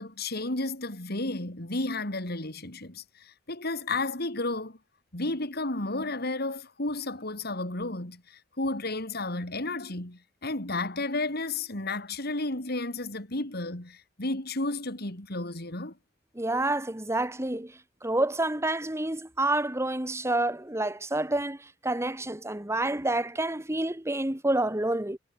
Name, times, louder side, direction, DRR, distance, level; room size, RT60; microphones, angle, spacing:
voice 1, 0.0-4.8 5.1-15.9, left 2 dB, 55° left, 3.6 m, -32 dB
voice 2, 16.3-17.7 18.0-25.2, right 2 dB, 15° right, 1.6 m, -28 dB
head